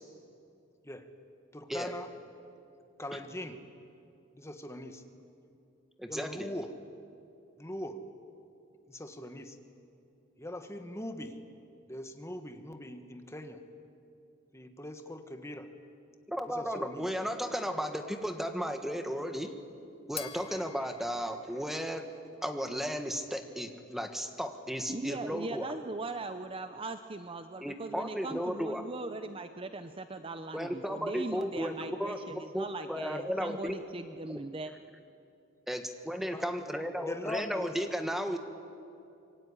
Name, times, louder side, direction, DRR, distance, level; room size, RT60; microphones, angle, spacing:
voice 1, 1.5-2.1 3.0-3.6 4.3-5.0 6.1-6.7 7.6-8.0 8.9-9.6 10.4-11.3 11.9-13.6 14.5-15.7 16.5-17.1 36.3-36.4 37.0-37.8, left 1 dB, 15° left, 7 dB, 1.5 m, -41 dB
voice 2, 6.0-6.5 16.3-19.5 20.1-22.0 22.4-25.7 27.6-28.8 30.5-33.8 34.3-34.4 35.7-38.4, equal, ahead, 6 dB, 1.6 m, -34 dB
sound 1, 18.0-22.8, left 8 dB, 30° left, 1.4 m, -50 dB
voice 3, 24.9-34.7, right 2 dB, 25° right, 9 dB, 0.7 m, -40 dB
25.5 x 22.5 x 9.8 m, 2.6 s
head